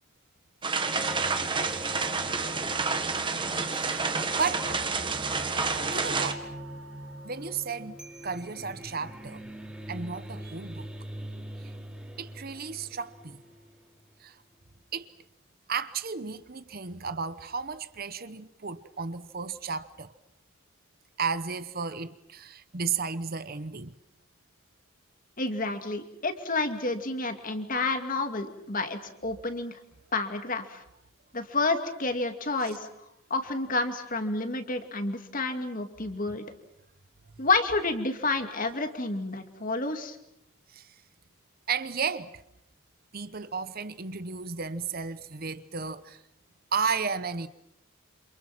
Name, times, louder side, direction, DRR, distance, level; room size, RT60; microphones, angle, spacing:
sound 1, 0.6-6.3, right 4 dB, 25° right, 1.7 m, -29 dB
sound 2, 0.9-13.8, equal, 5° right, 3.6 m, -42 dB
voice 1, 3.8-4.8 5.9-6.4 7.2-9.4 9.9-10.9 11.6-11.7 12.2-13.4 14.2-14.4 14.9-15.1 15.7-20.1 21.2-23.9 40.7-40.9 41.7-42.3 43.1-46.2 46.7-47.5, right 5 dB, 45° right, 0.9 m, -33 dB
voice 2, 25.4-29.7 30.1-30.8 31.3-32.9 33.3-36.4 37.4-40.2, left 3 dB, 40° left, 2.5 m, -29 dB
28.5 x 27.5 x 6.1 m
head